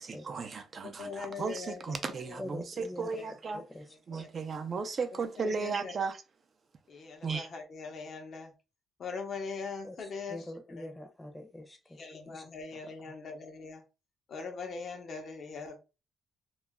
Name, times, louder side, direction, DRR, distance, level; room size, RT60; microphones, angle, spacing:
voice 1, 0.0-3.6 4.1-6.2 7.2-7.5, right 4 dB, 45° right, 0.4 m, -35 dB
voice 2, 0.8-2.4 3.2-3.3 3.9-4.3 5.1-5.9 6.9-8.5 9.0-10.9 11.9-13.8 14.3-15.8, left 4 dB, 55° left, 0.7 m, -42 dB
voice 3, 2.4-3.2 3.5-3.8 4.1-4.3 9.8-12.0 12.3-12.4, left 1 dB, 10° left, 0.7 m, -44 dB
2.3 x 2.0 x 3.4 m
cardioid pair, 90°, 0 cm